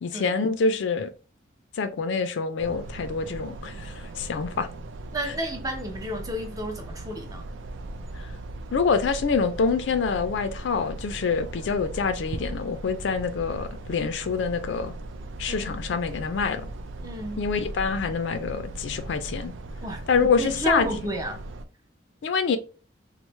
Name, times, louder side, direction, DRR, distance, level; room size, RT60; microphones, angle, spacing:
voice 1, 0.0-1.1 1.7-4.7 8.7-14.9 15.4-16.7 17.4-19.5 20.1-20.9 22.2-22.6, left 5 dB, 70° left, 0.4 m, -26 dB
sound 1, 2.6-21.6, right 2 dB, 80° right, 0.4 m, -38 dB
voice 2, 5.1-7.5 15.5-15.7 17.0-17.4 19.8-21.4, right 1 dB, 20° right, 0.5 m, -31 dB
3.0 x 2.0 x 3.1 m
head